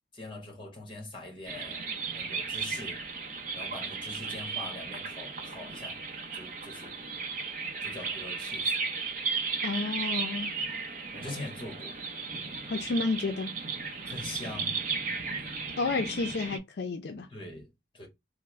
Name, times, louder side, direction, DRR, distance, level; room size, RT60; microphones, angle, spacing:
voice 1, 0.1-3.0 3.5-6.0 6.3-7.0 7.8-8.7 11.1-12.0 14.0-14.8 17.3-18.1, left 2 dB, 30° left, 1.2 m, -43 dB
sound 1, 1.5-16.6, right 4 dB, 50° right, 0.6 m, -35 dB
voice 2, 9.6-10.5 12.6-13.5 15.8-17.3, left 3 dB, 65° left, 0.4 m, -31 dB
3.4 x 2.0 x 3.1 m
head